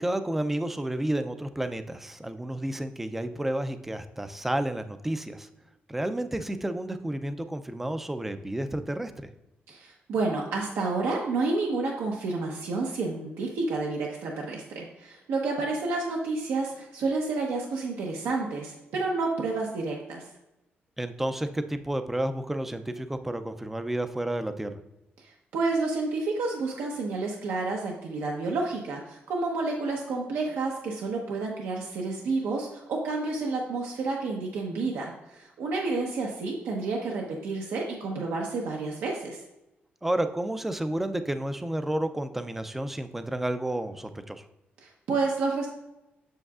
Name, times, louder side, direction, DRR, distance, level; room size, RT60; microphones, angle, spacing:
voice 1, 0.0-5.5 5.9-9.3 21.0-24.7 40.0-44.4, right 1 dB, 5° right, 9 dB, 0.3 m, -31 dB
voice 2, 9.7-20.3 25.2-39.4 44.8-45.7, right 3 dB, 90° right, -1 dB, 1.0 m, -30 dB
7.8 x 7.0 x 2.4 m, 0.94 s
wide cardioid pair, 180°, 4 cm